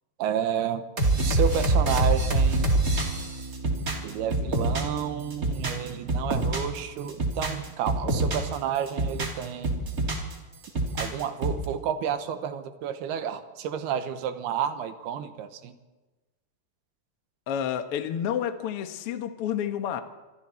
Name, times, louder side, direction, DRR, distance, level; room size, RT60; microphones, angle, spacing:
voice 1, 0.2-0.8 1.2-2.7 4.0-9.9 10.9-15.7, right 8 dB, 80° right, 9 dB, 3.1 m, -31 dB
sound 1, 1.0-5.0 5.3-6.8 7.1-8.5 8.9-10.3 10.6-11.6, right 2 dB, 25° right, 2.6 m, -25 dB
voice 2, 17.5-20.0, left 9 dB, 75° left, 8 dB, 1.3 m, -29 dB
27.0 x 25.0 x 4.4 m, 1.2 s
omnidirectional pair, 4.6 m